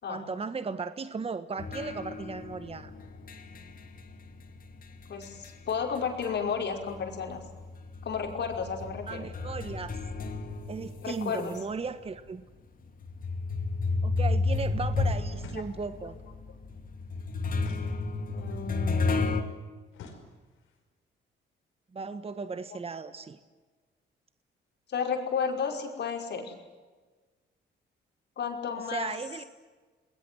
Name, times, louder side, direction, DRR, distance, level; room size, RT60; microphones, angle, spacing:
voice 1, 0.1-2.9 9.1-9.9 10.7-12.4 14.0-16.2 21.9-23.4 28.9-29.4, right 4 dB, 30° right, 11 dB, 1.3 m, -36 dB
sound 1, 1.6-6.6 6.9-11.5 12.1-12.2 13.0-19.4, left 3 dB, 45° left, 2.7 m, -32 dB
voice 2, 5.1-7.4 8.0-9.3 11.0-11.5 15.5-15.6 18.3-19.3 24.9-26.5 28.4-29.1, left 6 dB, 60° left, 3 dB, 5.3 m, -32 dB
sound 2, 15.4-16.1 17.6-18.6 19.9-20.8, left 5 dB, 90° left, 5.5 m, -50 dB
29.5 x 20.5 x 7.8 m, 1.3 s
cardioid pair, 90°, 20 cm